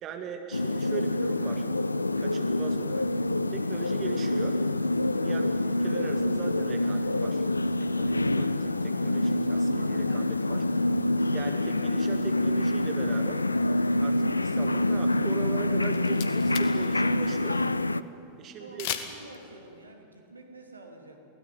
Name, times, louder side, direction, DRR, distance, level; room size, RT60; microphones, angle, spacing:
voice 1, 0.0-1.7 2.2-3.1 3.5-4.6 5.1-5.4 5.8-7.5 7.8-10.7 11.3-13.5 14.0-17.6 18.4-18.9, right 6 dB, 30° right, 5 dB, 1.9 m, -40 dB
sound 1, 0.5-18.0, left 1 dB, 80° left, 0.5 m, -26 dB
voice 2, 5.2-5.5 18.6-21.2, right 2 dB, 80° right, 3 dB, 2.9 m, -48 dB
sound 2, 15.8-16.9 17.1-17.2 18.8-19.4, left 10 dB, 50° left, 1.7 m, -35 dB
23.0 x 17.0 x 9.6 m, 2.7 s
figure-of-eight pair, 90°, 0 cm